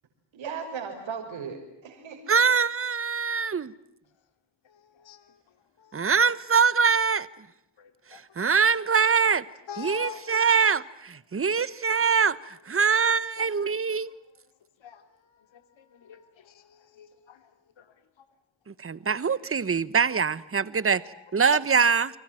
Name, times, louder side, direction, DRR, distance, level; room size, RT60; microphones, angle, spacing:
voice 1, 0.3-2.4, right 6 dB, 85° right, 6.0 m, -37 dB
voice 2, 2.3-3.7 5.9-7.3 8.1-9.4 9.8-14.1 18.7-21.0 21.3-22.1, right 6 dB, 30° right, 1.2 m, -23 dB
voice 3, 4.6-5.4 5.8-6.0 7.8-8.2 9.7-10.4 11.5-12.1 13.4-14.0 14.8-15.0 15.3-17.5 17.8-17.9 18.2-18.3 20.6-21.2 21.8-21.9, left 7 dB, 80° left, 2.9 m, -46 dB
30.0 x 24.5 x 7.7 m
wide cardioid pair, 125°, 45 cm